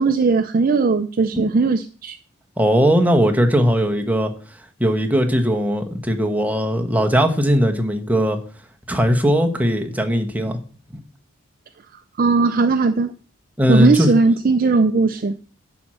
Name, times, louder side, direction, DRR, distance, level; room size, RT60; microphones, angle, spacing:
voice 1, 0.0-2.2 12.2-13.1 13.7-15.3, right 4 dB, 40° right, 0.4 m, -18 dB
voice 2, 2.6-4.3 4.8-8.4 8.9-10.6 13.6-14.1, equal, 5° right, 1.0 m, -18 dB
11.0 x 4.4 x 7.5 m
head